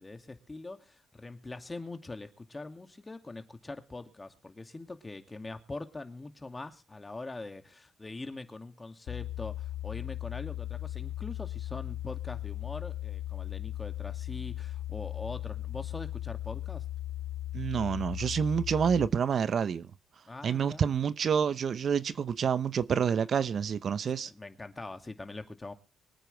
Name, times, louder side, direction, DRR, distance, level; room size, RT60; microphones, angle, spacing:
voice 1, 0.0-16.8 20.3-20.9 24.3-25.7, left 2 dB, 25° left, 2.5 m, -43 dB
sound 1, 9.1-19.1, left 14 dB, 80° left, 1.2 m, -37 dB
voice 2, 17.5-19.9 20.4-24.3, right 7 dB, 60° right, 0.8 m, -28 dB
24.5 x 9.1 x 3.4 m
cardioid pair, 65°, 0 cm